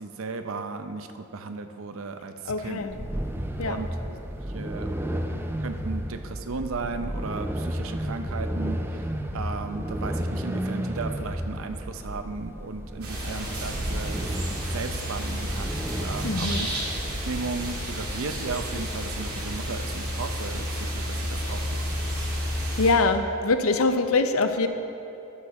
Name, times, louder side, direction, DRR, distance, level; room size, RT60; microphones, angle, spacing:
voice 1, 0.0-2.9 3.6-4.2 4.5-4.9 5.6-9.1 9.3-16.9 17.3-21.8, right 4 dB, 65° right, 8 dB, 0.6 m, -35 dB
voice 2, 2.5-3.0 3.6-3.8 16.2-16.7 21.4-21.7 22.8-24.7, left 3 dB, 70° left, 8 dB, 0.6 m, -24 dB
sound 1, 2.9-18.9, equal, 10° right, 0.4 m, -33 dB
sound 2, 13.0-22.9, equal, 85° right, 2.4 m, -31 dB
12.0 x 6.9 x 4.1 m, 3.0 s
head